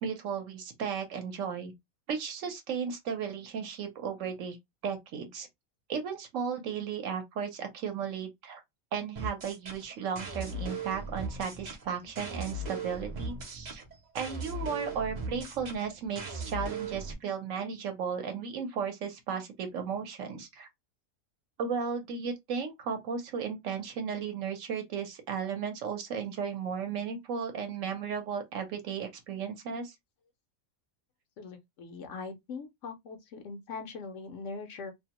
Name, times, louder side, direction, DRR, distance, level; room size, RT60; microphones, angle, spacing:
voice 1, 0.0-1.7 2.1-4.6 4.8-5.5 5.9-8.6 8.9-13.8 14.1-20.7 21.6-29.9, right 6 dB, 70° right, 1.0 m, -35 dB
sound 1, 9.1-17.1, right 2 dB, 45° right, 0.5 m, -38 dB
voice 2, 31.4-34.9, left 4 dB, 65° left, 0.8 m, -41 dB
2.6 x 2.1 x 2.8 m
omnidirectional pair, 1.5 m